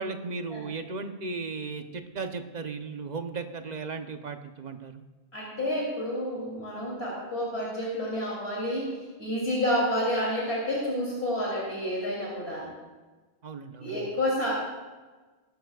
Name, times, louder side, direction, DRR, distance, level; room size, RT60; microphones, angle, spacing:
voice 1, 0.0-5.0 13.4-14.0, right 4 dB, 45° right, 7 dB, 0.9 m, -36 dB
voice 2, 5.3-12.7 13.8-14.5, equal, 70° left, -5 dB, 3.4 m, -29 dB
20.0 x 11.5 x 2.4 m, 1.3 s
omnidirectional pair, 1.1 m